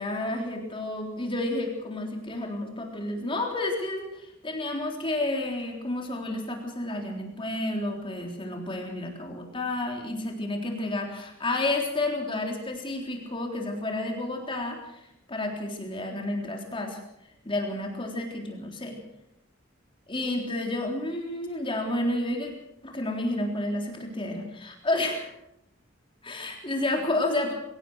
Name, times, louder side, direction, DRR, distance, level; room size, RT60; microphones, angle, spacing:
voice 1, 0.0-17.0 17.4-19.0 20.1-22.5 22.8-25.3 26.2-27.5, left 2 dB, 25° left, 2 dB, 3.7 m, -30 dB
24.0 x 17.0 x 6.4 m, 0.81 s
head